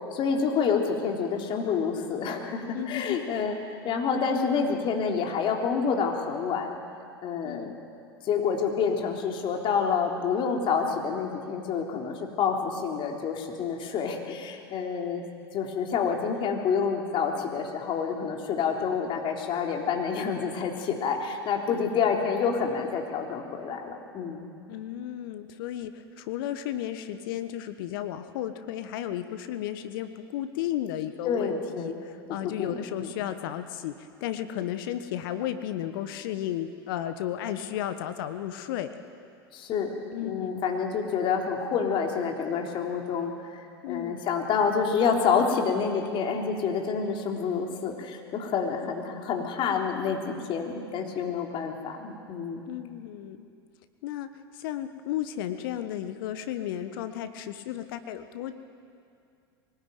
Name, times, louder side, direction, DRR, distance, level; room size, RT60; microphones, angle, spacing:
voice 1, 0.1-3.6 3.8-6.8 7.2-7.8 8.2-15.2 15.5-24.4 31.2-31.9 32.6-32.7 33.0-33.1 39.5-52.6, left 6 dB, 40° left, 1 dB, 3.5 m, -28 dB
voice 2, 2.7-3.2 7.4-7.8 21.7-21.9 24.7-39.0 40.1-40.5 43.8-44.2 52.7-53.5 54.0-54.3 54.6-58.5, left 11 dB, 60° left, 10 dB, 1.3 m, -34 dB
23.0 x 20.0 x 9.1 m, 2.4 s
figure-of-eight pair, 85°, 13 cm